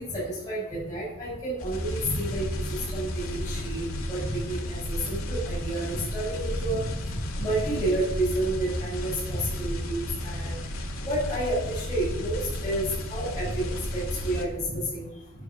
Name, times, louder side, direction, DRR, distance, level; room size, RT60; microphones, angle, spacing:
voice 1, 0.0-2.6 2.9-3.8 4.1-6.8 7.4-10.6 11.1-13.6 13.9-15.1, right 1 dB, 15° left, -9 dB, 5.9 m, -30 dB
sound 1, 1.6-14.5, left 1 dB, 85° left, 2.6 m, -33 dB
12.0 x 9.4 x 7.0 m, 0.89 s
head